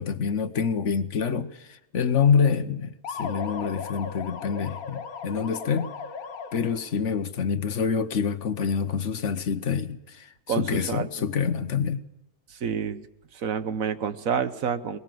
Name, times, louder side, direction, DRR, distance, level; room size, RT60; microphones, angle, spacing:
voice 1, 0.0-5.9 6.5-12.0, left 6 dB, 55° left, 1.3 m, -26 dB
sound 1, 3.0-6.9, left 5 dB, 75° left, 1.7 m, -37 dB
voice 2, 10.5-11.1 12.5-13.0 13.3-15.0, right 6 dB, 70° right, 1.4 m, -28 dB
22.5 x 21.0 x 7.7 m
omnidirectional pair, 1.5 m